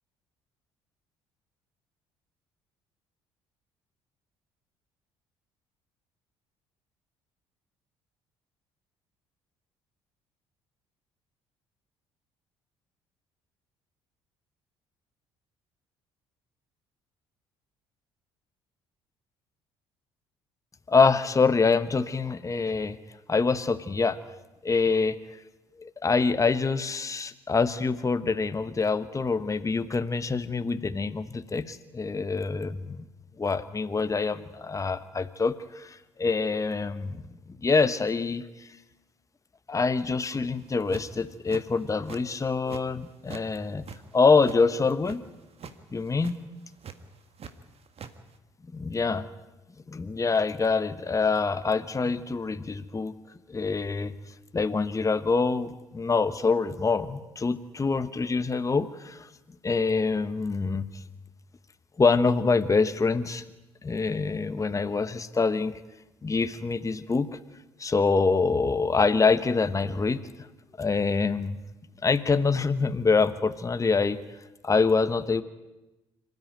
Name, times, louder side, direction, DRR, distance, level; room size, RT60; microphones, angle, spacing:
voice 1, 20.9-23.0 23.3-24.2 24.6-25.2 25.8-33.0 33.4-37.2 37.5-38.7 39.7-43.8 44.1-45.2 45.9-46.4 48.7-49.3 49.9-53.1 53.5-54.1 54.5-59.3 59.6-61.0 62.0-63.4 63.8-65.7 66.2-67.3 67.8-70.2 70.8-71.6 72.0-74.2 74.6-75.4, left 4 dB, 25° left, 11 dB, 1.2 m, -25 dB
sound 1, 40.6-41.2 41.5-42.2 42.5-43.5 43.7-45.2 45.5-45.8 46.1-46.3 46.8-47.5 47.8-48.1, right 6 dB, 45° right, 1.8 m, -42 dB
26.5 x 13.5 x 9.4 m, 1.0 s
hypercardioid pair, 50°, 14 cm